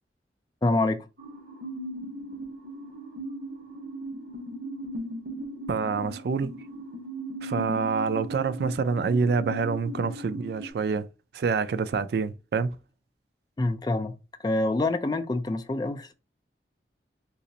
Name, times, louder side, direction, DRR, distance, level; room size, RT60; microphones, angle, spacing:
voice 1, 0.6-1.1 13.6-14.1 14.4-16.1, left 2 dB, 20° left, 0.3 m, -26 dB
sound 1, 1.2-10.7, right 1 dB, 85° right, 1.2 m, -38 dB
voice 2, 5.7-6.5 7.4-11.1 11.3-12.7, right 5 dB, 60° right, 0.3 m, -27 dB
4.0 x 2.5 x 2.7 m
head